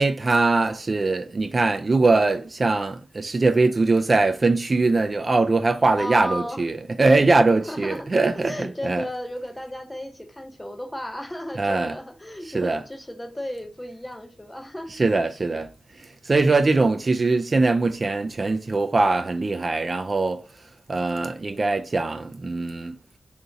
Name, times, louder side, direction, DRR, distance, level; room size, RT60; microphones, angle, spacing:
voice 1, 0.0-9.0 11.6-11.9 12.5-12.8 15.0-15.7 16.0-20.4 20.9-23.0, right 3 dB, 45° right, 0.3 m, -21 dB
voice 2, 6.0-6.6 7.6-8.1 8.3-15.0, left 1 dB, 15° left, 0.7 m, -34 dB
2.7 x 2.6 x 3.7 m
cardioid pair, 65°, 0 cm